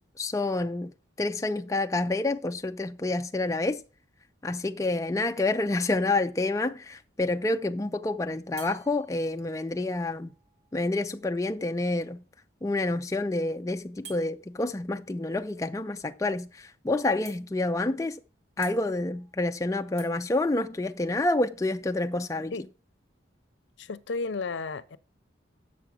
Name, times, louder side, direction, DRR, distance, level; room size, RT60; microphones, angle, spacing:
voice 1, 0.2-0.9 1.2-3.8 4.4-10.3 10.7-12.2 12.6-18.2 18.6-22.5, left 2 dB, 15° left, 0.3 m, -28 dB
sound 1, 8.6-12.2 14.0-14.3 16.2-16.3 16.6-16.7 17.2-17.8 18.6-21.3, right 4 dB, 65° right, 2.4 m, -53 dB
voice 2, 23.8-25.0, left 4 dB, 75° left, 0.5 m, -33 dB
7.5 x 6.0 x 6.0 m
head